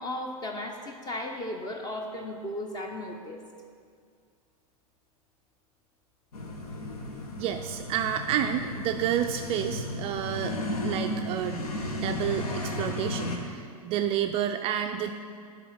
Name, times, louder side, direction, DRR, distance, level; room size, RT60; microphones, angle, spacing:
voice 1, 0.0-3.4, left 1 dB, 20° left, 3 dB, 0.7 m, -35 dB
sound 1, 6.3-13.4, left 1 dB, 70° left, 1.1 m, -34 dB
voice 2, 7.4-11.7 12.0-15.1, right 10 dB, 30° right, 6 dB, 0.4 m, -30 dB
10.0 x 4.0 x 6.3 m, 2.2 s
figure-of-eight pair, 95°, 20 cm